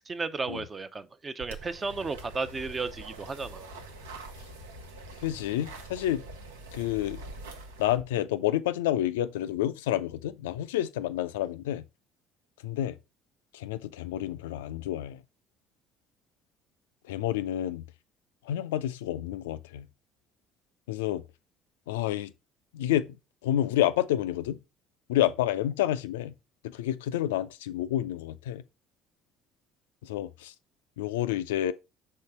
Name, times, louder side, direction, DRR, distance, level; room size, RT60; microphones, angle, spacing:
voice 1, 0.0-3.7, right 4 dB, 25° right, 0.7 m, -34 dB
sound 1, 1.4-8.0, right 2 dB, 75° right, 0.8 m, -44 dB
voice 2, 5.2-6.2 6.7-7.2 7.8-11.8 12.6-13.0 13.5-15.2 17.1-17.8 18.5-19.9 20.9-21.2 21.9-22.3 22.7-23.2 23.4-24.6 25.1-26.3 26.6-28.6 30.0-30.5 31.0-31.7, left 12 dB, 70° left, 0.4 m, -29 dB
5.5 x 3.9 x 4.8 m
figure-of-eight pair, 55°, 0 cm